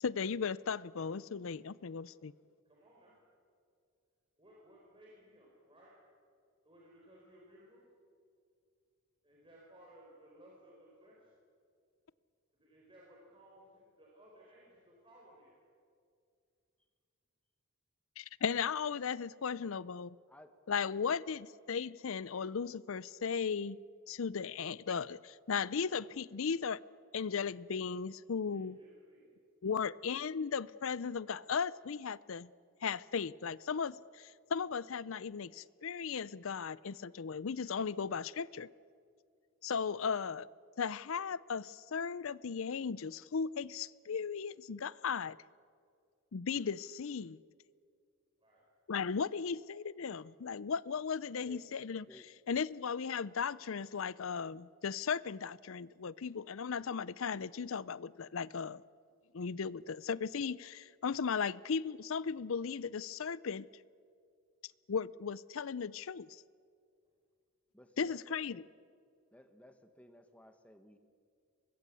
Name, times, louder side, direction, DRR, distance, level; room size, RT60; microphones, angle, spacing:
voice 1, 0.0-2.3 18.2-20.2 20.7-23.8 24.1-26.8 27.1-28.8 29.6-32.5 32.8-38.7 39.6-40.5 40.8-45.4 46.3-47.4 48.9-52.0 52.5-58.8 59.3-63.7 64.9-66.4 68.0-68.6, left 6 dB, 70° left, 0.5 m, -36 dB
voice 2, 2.6-3.1 4.4-6.0 6.6-7.8 9.2-11.3 12.5-15.6 21.6-21.9 28.5-29.4 29.7-29.8 48.4-48.6, equal, 25° right, 4.4 m, -60 dB
voice 3, 20.3-20.6 51.5-51.8 52.1-52.3 67.7-68.7 69.3-71.0, equal, 5° left, 1.4 m, -57 dB
24.0 x 21.0 x 8.4 m
head